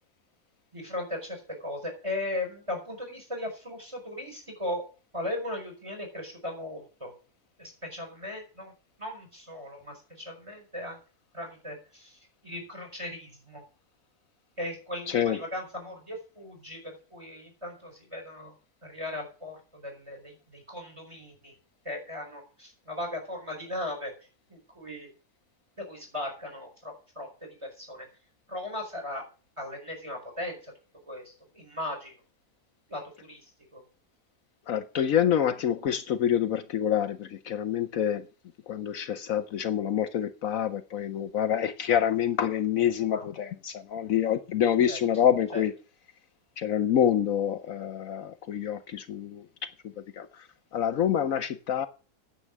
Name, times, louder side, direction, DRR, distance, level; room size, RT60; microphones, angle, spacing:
voice 1, 0.7-4.8 5.1-7.1 7.6-8.7 9.0-11.0 11.3-13.6 14.6-18.5 18.8-21.5 21.8-24.1 24.5-25.1 25.8-27.3 27.6-28.1 28.5-29.2 29.6-30.7 31.1-32.1 32.9-33.4 33.7-33.8 43.1-43.2 44.9-45.0 45.5-45.6, left 1 dB, 20° right, 3 dB, 5.0 m, -37 dB
voice 2, 15.1-15.4 34.7-38.3 38.7-45.7 46.6-49.5 49.8-50.4 50.7-51.9, left 9 dB, 70° left, 12 dB, 1.1 m, -27 dB
9.9 x 7.9 x 7.3 m, 0.36 s
omnidirectional pair, 1.6 m